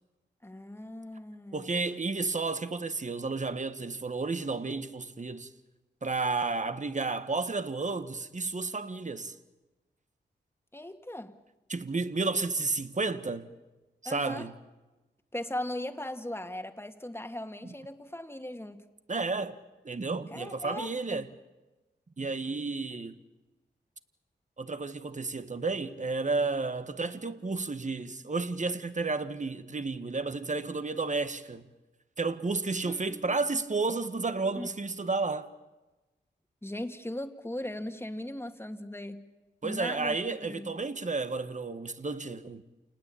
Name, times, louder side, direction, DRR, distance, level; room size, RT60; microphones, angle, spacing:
voice 1, 0.4-1.9 10.7-11.4 14.0-14.5 15.3-18.8 20.3-21.3 32.8-33.7 34.5-34.7 36.6-39.2 39.6-40.2 40.5-40.7, left 1 dB, 15° left, 2.2 m, -39 dB
voice 2, 1.5-5.5 6.0-9.3 11.7-13.5 14.0-14.5 17.6-17.7 19.1-19.6 19.8-21.3 22.2-23.2 24.6-31.7 32.2-35.5 39.6-42.6, right 3 dB, 40° right, 1.7 m, -32 dB
28.5 x 19.5 x 8.7 m
cardioid pair, 50°, 19 cm